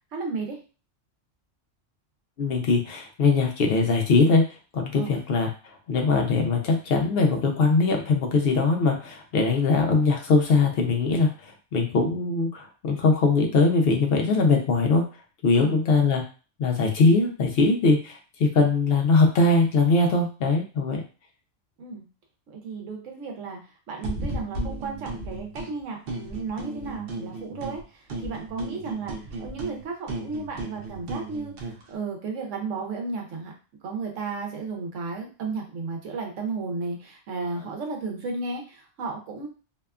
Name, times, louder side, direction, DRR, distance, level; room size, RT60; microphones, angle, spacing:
voice 1, 0.1-0.6 4.9-5.1 15.5-15.8 21.8-22.0 22.5-23.6 23.9-33.5 33.8-39.5, right 4 dB, 75° right, 1 dB, 1.0 m, -34 dB
voice 2, 2.4-4.4 4.7-5.5 5.9-15.0 15.4-16.2 16.6-21.0, left 3 dB, 60° left, 2 dB, 0.7 m, -21 dB
sound 1, 24.0-25.7 26.1-27.8 28.1-31.8, right 2 dB, 60° right, 0.7 m, -35 dB
2.8 x 2.2 x 2.3 m, 0.35 s
omnidirectional pair, 1.3 m